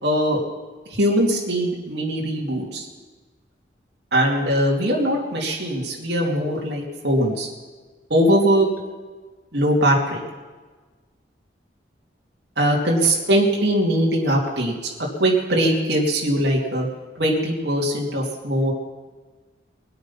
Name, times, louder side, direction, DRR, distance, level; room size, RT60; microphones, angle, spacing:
voice 1, 0.0-0.4 1.0-2.9 4.1-7.5 8.1-8.7 9.5-10.2 12.6-14.7 15.0-16.9 17.2-18.7, right 1 dB, 70° right, -3 dB, 2.8 m, -21 dB
21.5 x 8.6 x 5.8 m, 1.3 s
head